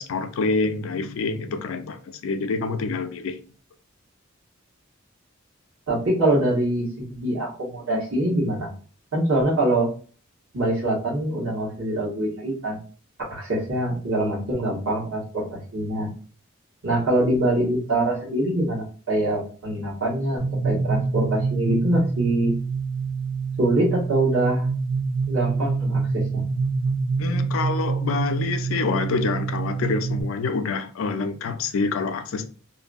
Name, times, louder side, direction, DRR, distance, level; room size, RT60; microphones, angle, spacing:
voice 1, 0.0-3.4 27.2-32.5, left 4 dB, 70° left, 0.4 m, -26 dB
voice 2, 5.9-8.7 9.1-9.9 10.5-12.8 13.3-16.1 16.8-22.5 23.6-24.7 25.3-26.4, right 1 dB, 70° right, 1.3 m, -24 dB
sound 1, 20.4-30.2, right 4 dB, 15° right, 0.5 m, -26 dB
2.7 x 2.5 x 2.3 m
head